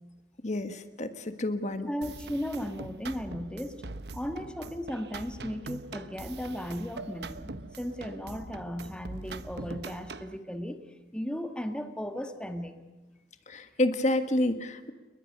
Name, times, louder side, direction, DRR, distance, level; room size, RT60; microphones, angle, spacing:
voice 1, 0.4-1.9 13.5-14.9, left 1 dB, 40° left, 9 dB, 1.5 m, -29 dB
voice 2, 1.9-3.8 4.1-10.8 11.1-12.8, equal, 5° left, 7 dB, 1.5 m, -36 dB
sound 1, 2.0-10.4, right 3 dB, 65° right, 0.9 m, -43 dB
29.5 x 21.5 x 6.7 m, 1.2 s
head